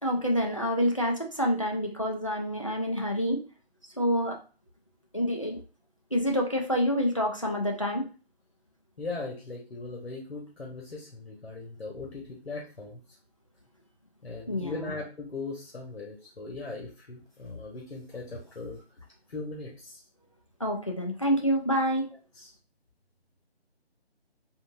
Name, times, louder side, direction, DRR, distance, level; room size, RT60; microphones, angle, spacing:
voice 1, 0.0-3.4 4.0-4.4 5.1-5.6 6.1-8.1 14.5-14.9 20.6-22.1, equal, 30° left, 2 dB, 0.4 m, -27 dB
voice 2, 9.0-13.0 14.2-18.8 19.3-20.0 22.3-22.5, left 3 dB, 80° left, -2 dB, 1.2 m, -39 dB
3.9 x 2.6 x 2.6 m, 0.35 s
figure-of-eight pair, 155°, 32 cm